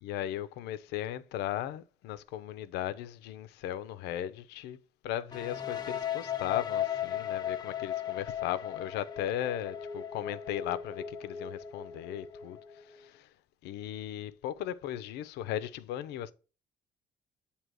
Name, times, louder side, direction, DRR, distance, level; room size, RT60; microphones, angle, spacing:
voice 1, 0.0-4.8 5.0-13.3 13.6-16.3, left 12 dB, 85° left, 0.5 m, -37 dB
sound 1, 5.3-13.0, left 10 dB, 25° left, 0.6 m, -36 dB
7.6 x 2.9 x 4.7 m
cardioid pair, 110°, 17 cm